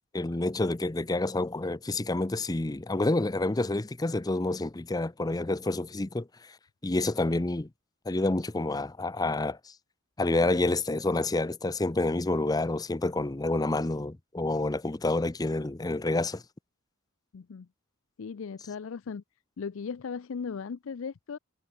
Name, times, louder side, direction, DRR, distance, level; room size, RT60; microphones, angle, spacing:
voice 1, 0.1-6.5 6.8-7.7 8.1-9.7 10.2-16.4, left 2 dB, 15° left, 0.6 m, -28 dB
voice 2, 17.3-17.7 18.2-19.2 19.6-21.4, left 5 dB, 60° left, 0.4 m, -37 dB
head